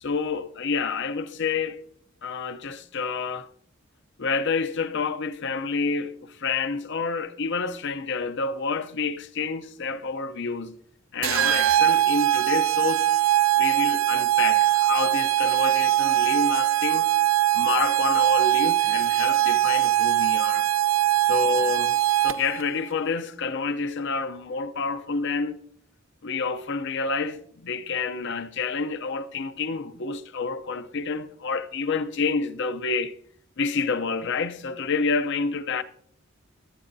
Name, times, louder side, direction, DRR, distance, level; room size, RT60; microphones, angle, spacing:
voice 1, 0.0-1.8 2.2-3.5 4.2-10.8 11.1-13.1 13.6-17.1 17.5-20.7 21.2-25.6 26.2-33.2 33.6-35.8, left 4 dB, 60° left, 0.7 m, -28 dB
sound 1, 11.2-22.6, right 13 dB, 65° right, 0.5 m, -21 dB
22.5 x 8.7 x 2.7 m
head